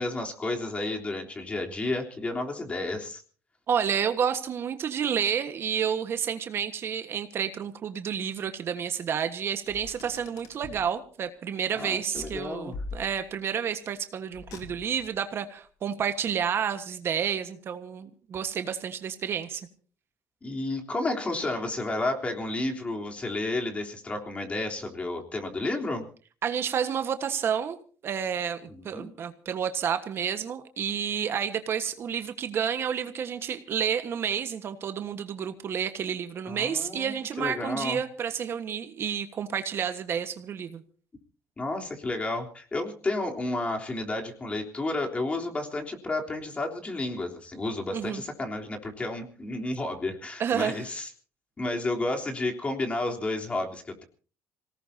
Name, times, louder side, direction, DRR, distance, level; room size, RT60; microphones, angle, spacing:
voice 1, 0.0-3.2 11.7-12.8 20.4-26.1 28.7-29.1 36.5-38.0 41.6-51.1 51.6-54.0, left 2 dB, 25° left, 2 dB, 3.5 m, -31 dB
voice 2, 3.7-19.7 26.4-27.8 28.0-40.8 47.9-48.2 50.4-50.8, right 8 dB, 50° right, 9 dB, 1.4 m, -30 dB
Car, 9.7-10.9 12.1-13.5 14.3-15.2, left 3 dB, 85° left, 3.7 m, -42 dB
27.0 x 18.5 x 2.8 m, 0.41 s
cardioid pair, 120°, 5 cm